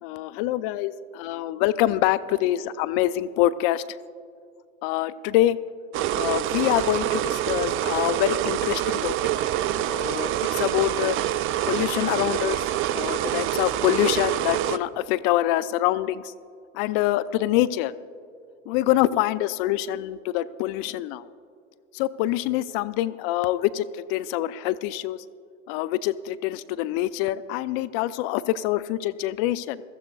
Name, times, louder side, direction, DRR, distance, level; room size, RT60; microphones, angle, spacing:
voice 1, 0.0-3.8 4.8-5.6 6.1-9.1 9.9-11.2 11.7-12.6 12.9-16.3 16.7-17.9 18.7-21.3 21.9-25.2 25.7-29.8, left 14 dB, 50° left, 15 dB, 0.5 m, -25 dB
sound 1, 5.9-14.8, right 12 dB, 35° right, 0.4 m, -26 dB
21.0 x 14.0 x 2.4 m, 2.4 s
hypercardioid pair, 85°, 37 cm